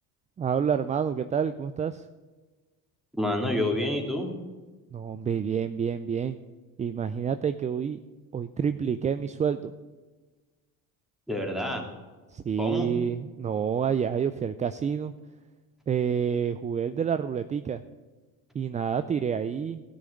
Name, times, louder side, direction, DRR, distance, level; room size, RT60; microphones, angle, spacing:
voice 1, 0.4-2.0 4.9-6.4 6.8-8.0 8.3-9.7 12.3-15.1 15.9-17.8 18.5-19.8, right 7 dB, 15° right, 10 dB, 0.3 m, -28 dB
voice 2, 3.2-4.4 11.3-11.8 12.6-12.9, left 1 dB, ahead, 1 dB, 3.0 m, -28 dB
14.0 x 6.3 x 8.3 m, 1.3 s
hypercardioid pair, 75°, 50 cm